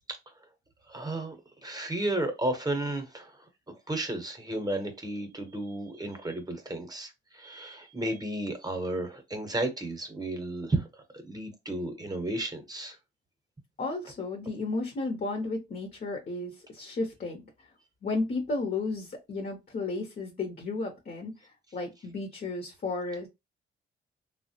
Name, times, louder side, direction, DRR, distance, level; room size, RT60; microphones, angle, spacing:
voice 1, 0.9-1.4 1.6-3.3 3.9-10.9 11.3-13.0, right 1 dB, 20° right, 0.8 m, -33 dB
voice 2, 13.8-17.4 18.0-23.3, left 3 dB, 45° left, 0.7 m, -33 dB
3.2 x 2.0 x 2.7 m
cardioid pair, 100°, 21 cm